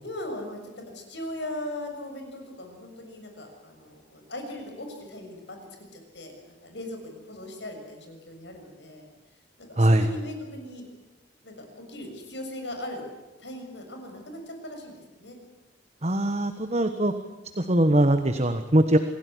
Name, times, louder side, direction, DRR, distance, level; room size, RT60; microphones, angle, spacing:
voice 1, 0.0-5.6 5.9-9.1 9.6-10.8 11.4-13.1 13.4-15.4, left 1 dB, 75° left, 4 dB, 6.7 m, -39 dB
voice 2, 16.0-17.1 17.6-19.0, right 1 dB, 35° right, 8 dB, 1.3 m, -21 dB
27.0 x 17.0 x 9.9 m, 1.1 s
head